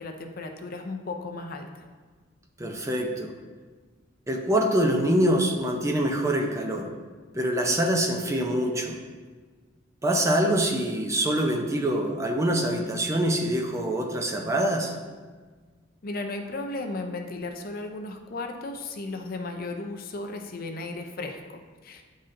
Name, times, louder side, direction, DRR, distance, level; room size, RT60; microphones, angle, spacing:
voice 1, 0.0-1.8 16.0-22.0, left 2 dB, 45° left, 4 dB, 0.5 m, -35 dB
voice 2, 2.6-3.3 4.3-6.9 7.3-9.0 10.0-14.9, right 1 dB, 15° right, 2 dB, 0.5 m, -25 dB
9.9 x 4.1 x 2.5 m, 1.4 s
head